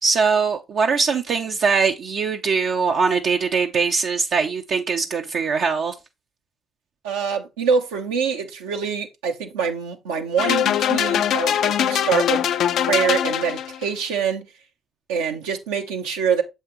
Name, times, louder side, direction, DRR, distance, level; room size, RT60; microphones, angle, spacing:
voice 1, 0.0-5.9, right 5 dB, 65° right, 0.6 m, -21 dB
voice 2, 7.0-12.4 12.9-14.5 15.1-16.4, right 6 dB, 85° right, 0.9 m, -24 dB
sound 1, 10.4-13.9, left 10 dB, 70° left, 0.4 m, -22 dB
7.0 x 5.5 x 3.0 m
hypercardioid pair, 50°, 0 cm